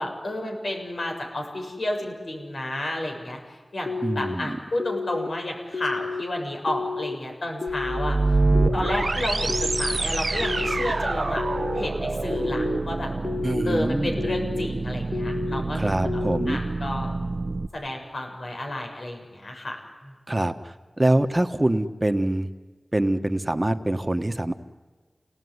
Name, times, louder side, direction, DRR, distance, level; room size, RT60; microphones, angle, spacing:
voice 1, 0.0-8.2 8.7-11.4 11.7-13.1 13.7-16.2 16.5-17.1 17.7-19.8 20.0-20.1, left 1 dB, 80° left, 2 dB, 7.0 m, -31 dB
sound 1, 3.9-4.3 4.8-5.3 5.7-6.2 6.7-7.2 7.6-8.1 8.5-9.0 9.5-10.0 10.4-10.9 11.4-11.9 12.3-12.8 13.2-13.7 14.2-14.7 15.1-15.6 16.1-16.5, left 4 dB, 55° left, 0.8 m, -31 dB
voice 2, 4.0-4.6 13.4-14.2 15.7-16.6 20.3-22.5 22.9-24.5, right 1 dB, 25° right, 8 dB, 1.5 m, -24 dB
sound 2, 7.7-17.7, right 3 dB, 55° right, 0.9 m, -26 dB
29.0 x 18.5 x 9.7 m, 1.4 s
wide cardioid pair, 70°, 0 cm